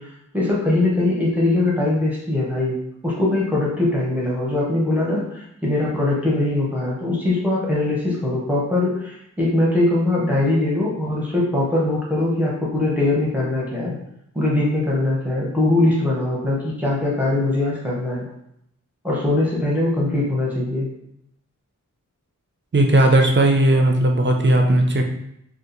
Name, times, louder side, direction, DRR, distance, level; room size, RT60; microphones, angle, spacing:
voice 1, 0.0-2.8 3.0-13.9 14.3-18.3 19.0-20.9, left 2 dB, 5° right, -5 dB, 0.8 m, -21 dB
voice 2, 22.7-25.0, right 1 dB, 35° right, 2 dB, 0.5 m, -16 dB
2.7 x 2.3 x 3.8 m, 0.77 s
wide cardioid pair, 90°, 33 cm